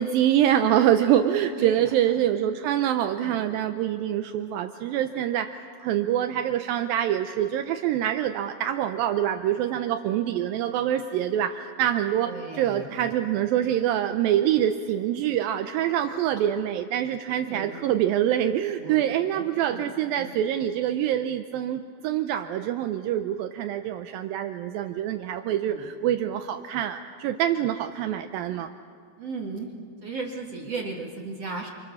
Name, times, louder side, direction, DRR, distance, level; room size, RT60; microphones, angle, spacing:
voice 1, 0.0-5.5 5.8-28.7, right 11 dB, 80° right, 7 dB, 2.1 m, -25 dB
voice 2, 1.6-2.3 3.2-3.4 12.2-13.2 15.9-16.0 17.3-17.8 18.8-20.3 25.7-25.9 29.2-29.7 30.0-31.7, right 3 dB, 45° right, 0 dB, 2.4 m, -37 dB
29.5 x 25.5 x 7.1 m, 2.2 s
omnidirectional pair, 5.0 m